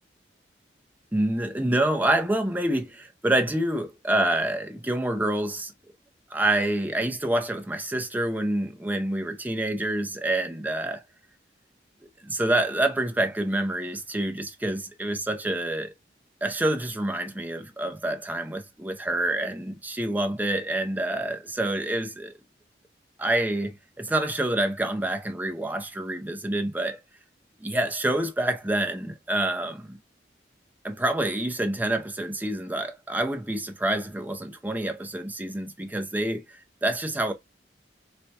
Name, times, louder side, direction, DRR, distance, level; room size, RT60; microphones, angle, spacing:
voice 1, 1.1-5.7 6.3-11.0 12.2-15.9 16.4-22.3 23.2-27.0 27.6-30.0 30.8-37.3, right 1 dB, 10° right, 0.5 m, -27 dB
4.2 x 2.2 x 2.7 m
head